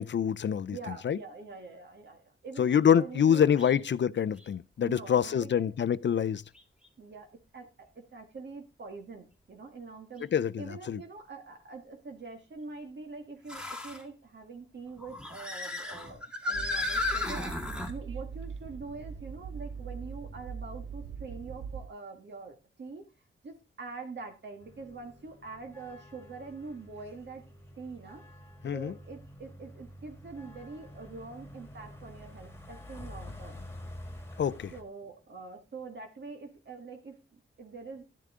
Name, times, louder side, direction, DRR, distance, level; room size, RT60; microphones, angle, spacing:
voice 1, 0.0-0.8 1.0-1.2 2.6-6.4 10.3-11.0 28.6-28.9 34.4-34.7, left 8 dB, 60° left, 0.5 m, -26 dB
voice 2, 0.7-3.8 4.8-5.7 7.0-7.3 7.5-10.2 10.6-23.1 23.4-27.4 27.8-28.3 28.7-33.7 34.7-38.0, right 4 dB, 55° right, 1.8 m, -44 dB
sound 1, 3.6-3.8 4.4-4.5 6.5-6.6 10.2-10.3 13.5-14.0 15.0-17.9, left 2 dB, 5° right, 2.0 m, -34 dB
Train, 16.5-21.9, right 6 dB, 75° right, 0.9 m, -41 dB
sound 2, 24.6-34.8, left 1 dB, 10° left, 2.0 m, -48 dB
12.0 x 10.0 x 3.7 m
wide cardioid pair, 145°, 21 cm